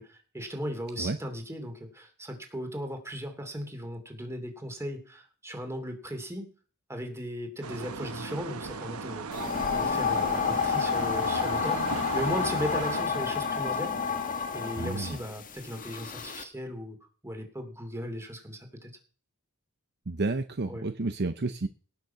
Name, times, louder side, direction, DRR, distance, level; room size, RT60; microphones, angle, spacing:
voice 1, 0.0-6.5 6.9-14.1 14.5-17.0 17.2-18.9 20.7-20.8, equal, 10° right, 5 dB, 2.9 m, -37 dB
sound 1, 7.6-13.0, right 4 dB, 85° right, 1.1 m, -37 dB
sound 2, 9.3-16.4, left 6 dB, 40° left, 1.5 m, -30 dB
voice 2, 14.8-15.2 20.1-21.7, right 3 dB, 50° right, 9 dB, 0.8 m, -31 dB
18.0 x 6.6 x 5.8 m, 0.39 s
head